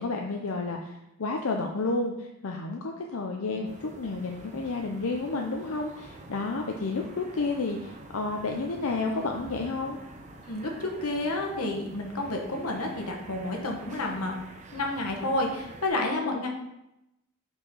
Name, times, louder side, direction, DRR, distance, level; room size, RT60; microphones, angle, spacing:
voice 1, 0.0-10.0 16.2-16.4, left 3 dB, 70° left, 2 dB, 0.6 m, -31 dB
sound 1, 3.6-15.9, right 2 dB, 35° right, 0.7 m, -47 dB
voice 2, 10.4-14.4 14.7-16.5, left 2 dB, 90° left, 1 dB, 1.3 m, -30 dB
5.5 x 4.5 x 5.4 m, 0.88 s
head